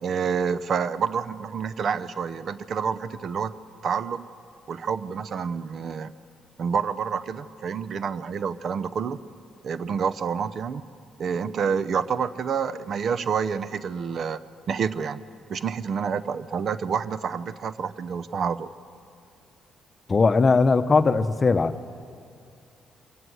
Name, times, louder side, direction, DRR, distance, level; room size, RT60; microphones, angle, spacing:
voice 1, 0.0-3.5 3.8-4.3 4.7-6.1 6.6-9.2 9.6-10.8 11.2-14.4 14.7-15.2 15.5-18.7, right 6 dB, 55° right, 15 dB, 0.7 m, -28 dB
voice 2, 20.1-21.8, left 4 dB, 35° left, 11 dB, 0.8 m, -19 dB
25.0 x 14.5 x 7.8 m, 2.4 s
cardioid pair, 90°, 0 cm